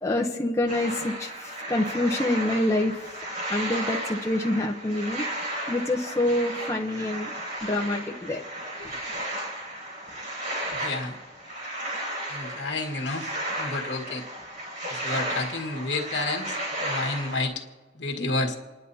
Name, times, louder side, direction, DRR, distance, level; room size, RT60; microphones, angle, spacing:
voice 1, 0.0-3.2 3.5-5.2 5.7-7.3 7.6-8.4, left 1 dB, 15° left, 0 dB, 0.8 m, -26 dB
sound 1, 0.7-17.5, right 1 dB, 50° right, 4.5 m, -34 dB
voice 2, 10.7-11.2 12.3-13.3 13.6-14.2 14.9-17.6 17.9-18.6, left 2 dB, 65° left, 1 dB, 1.7 m, -30 dB
29.0 x 10.5 x 2.8 m, 1.4 s
head